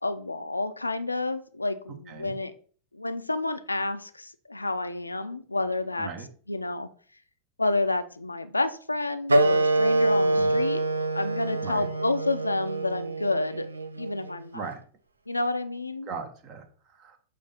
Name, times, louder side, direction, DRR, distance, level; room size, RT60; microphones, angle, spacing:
voice 1, 0.0-2.5 2.9-6.1 6.5-6.9 7.6-10.8 11.1-13.7 14.0-14.6 15.3-16.1, left 2 dB, 85° left, 10 dB, 0.5 m, -29 dB
Wind instrument woodwind instrument, 9.3-14.4, right 2 dB, 75° right, 0.5 m, -25 dB
voice 2, 16.1-17.2, right 5 dB, 40° right, 6 dB, 1.2 m, -38 dB
6.9 x 2.7 x 5.6 m, 0.44 s
figure-of-eight pair, 90°, 0 cm